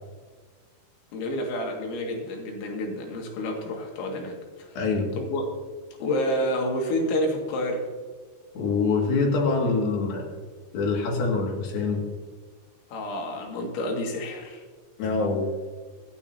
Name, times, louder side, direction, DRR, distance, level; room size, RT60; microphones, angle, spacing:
voice 1, 1.1-4.7 5.2-5.4 6.0-7.9 12.9-14.6, left 1 dB, 90° left, 1 dB, 4.3 m, -29 dB
voice 2, 4.8-5.1 8.6-10.3 10.7-12.1 15.0-15.5, left 4 dB, 60° left, 0 dB, 3.6 m, -25 dB
25.5 x 8.6 x 2.7 m, 1.5 s
omnidirectional pair, 5.2 m